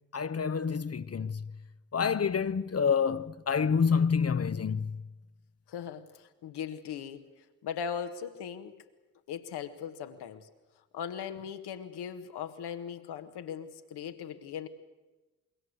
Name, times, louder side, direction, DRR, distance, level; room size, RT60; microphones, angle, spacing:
voice 1, 0.1-1.5 1.9-5.0, left 6 dB, 40° left, 1.0 m, -28 dB
voice 2, 5.7-8.8 9.3-10.5 10.9-14.7, left 8 dB, 75° left, 1.8 m, -39 dB
26.0 x 22.5 x 8.2 m
supercardioid pair, 45°, 40 cm